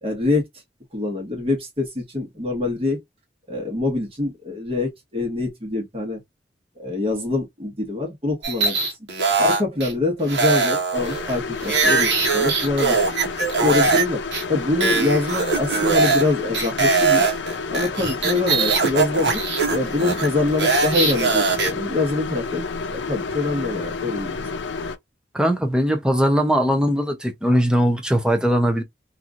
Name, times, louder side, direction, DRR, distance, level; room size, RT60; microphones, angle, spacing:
voice 1, 0.0-0.4 0.9-3.0 3.5-6.2 6.8-8.9 9.4-13.0 13.6-14.2 14.5-17.4 17.7-19.4 19.7-22.6 22.9-24.4, left 3 dB, 35° right, 1.2 m, -24 dB
sound 1, 8.4-9.9 10.3-14.0 14.3-14.4 14.8-16.3 16.5-21.7, right 4 dB, 70° right, 1.0 m, -21 dB
sound 2, 10.9-25.0, left 4 dB, 90° left, 0.5 m, -30 dB
voice 2, 25.3-28.8, equal, 5° right, 0.5 m, -20 dB
2.9 x 2.5 x 2.4 m
head